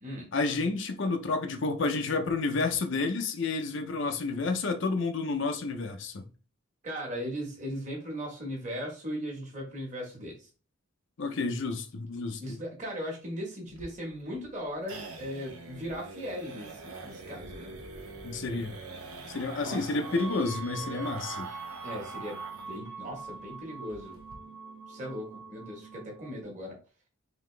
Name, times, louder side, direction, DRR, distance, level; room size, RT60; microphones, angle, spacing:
voice 1, 0.3-6.3 11.2-12.4 18.2-18.7 19.3-21.5, left 3 dB, 55° left, 0.5 m, -30 dB
voice 2, 6.8-10.5 12.4-17.7 19.6-20.3 21.8-24.2 24.9-26.8, equal, 35° right, 1.3 m, -38 dB
sound 1, 13.7-22.8 23.1-23.2 23.5-23.6 23.9-24.4, right 3 dB, 85° right, 0.8 m, -44 dB
sound 2, 20.0-26.4, right 4 dB, 55° right, 1.3 m, -43 dB
3.9 x 2.8 x 3.3 m
head